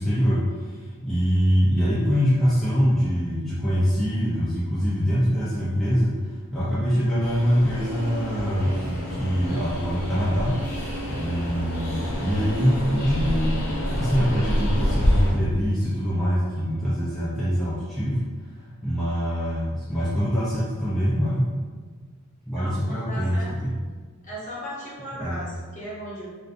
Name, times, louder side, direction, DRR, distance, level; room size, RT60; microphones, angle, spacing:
voice 1, 0.0-6.2 6.5-13.6 13.9-18.2 18.8-21.5 22.5-23.7 25.2-25.5, equal, ahead, -11 dB, 0.3 m, -24 dB
Train, 7.2-15.3, equal, 75° left, 0.6 m, -27 dB
voice 2, 22.6-23.5 24.2-26.3, equal, 35° left, -9 dB, 0.9 m, -36 dB
2.4 x 2.3 x 2.4 m, 1.5 s
head